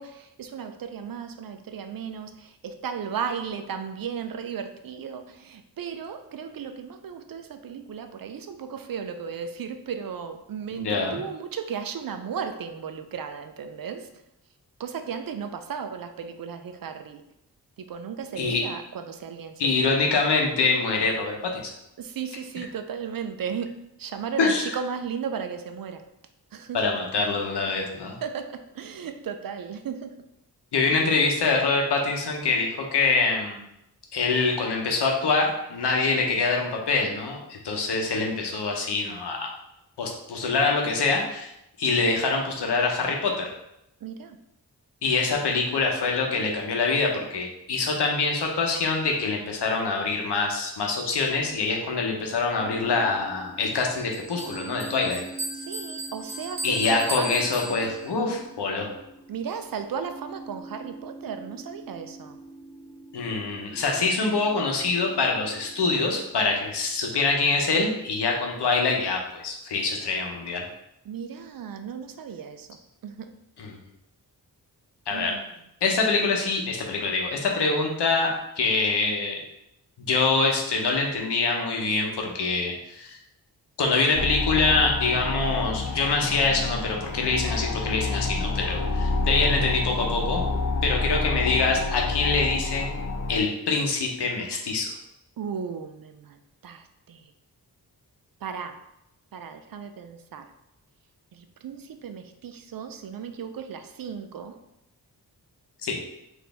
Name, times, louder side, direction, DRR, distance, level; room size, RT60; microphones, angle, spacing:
voice 1, 0.0-14.1 14.8-17.2 17.9-19.5 22.0-26.0 26.5-26.8 28.2-30.1 44.0-44.4 55.5-57.8 59.3-62.4 71.1-72.7 73.0-73.3 75.1-75.4 95.4-97.2 98.4-98.8 99.3-100.5 101.3-104.6, right 7 dB, 60° right, 8 dB, 0.5 m, -35 dB
voice 2, 10.7-11.2 18.4-18.6 19.6-21.6 24.4-24.8 26.7-28.2 30.7-33.6 34.1-39.5 40.0-41.5 41.8-43.5 45.0-55.2 56.6-58.9 63.1-70.6 73.6-73.8 75.1-75.3 75.8-78.3 78.6-79.4 80.0-83.2 83.8-90.4 90.8-92.9 93.3-94.9 105.8-106.0, left 4 dB, 85° left, 1 dB, 0.8 m, -25 dB
sound 1, 52.5-66.6, right 2 dB, 80° right, 1.0 m, -45 dB
Bell, 53.7-58.2, right 1 dB, 45° right, 1.0 m, -36 dB
sound 2, 84.1-93.4, left 3 dB, 45° left, 0.5 m, -28 dB
4.2 x 2.6 x 3.3 m, 0.83 s
cardioid pair, 60°, 39 cm